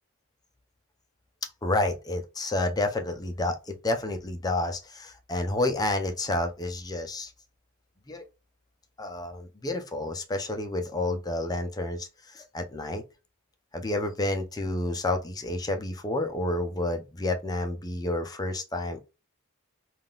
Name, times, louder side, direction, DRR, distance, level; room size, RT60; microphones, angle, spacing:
voice 1, 1.6-7.3 8.1-8.2 9.0-13.0 13.7-19.0, left 2 dB, 20° left, 0.5 m, -30 dB
3.6 x 2.4 x 2.3 m
head